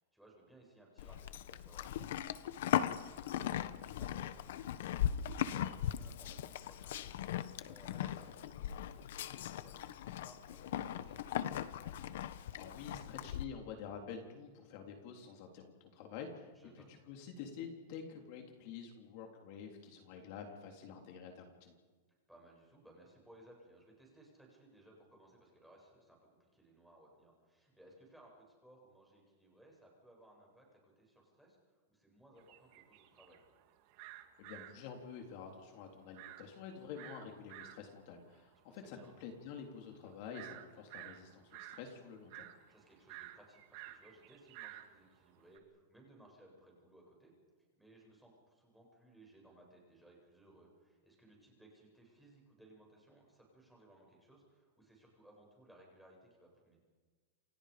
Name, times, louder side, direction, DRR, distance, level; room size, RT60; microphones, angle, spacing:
voice 1, 0.0-11.6 16.5-17.0 22.3-33.4 38.7-39.1 42.7-47.3 47.8-56.8, right 1 dB, ahead, -2 dB, 7.8 m, -62 dB
Livestock farm animals working animals, 1.0-13.4, left 11 dB, 65° left, 1.3 m, -39 dB
voice 2, 12.6-21.7 34.4-42.5, left 6 dB, 45° left, 2 dB, 3.5 m, -48 dB
sound 1, 32.4-45.6, right 14 dB, 45° right, 2.3 m, -53 dB
29.0 x 28.0 x 5.2 m, 1.4 s
supercardioid pair, 160°, 0 cm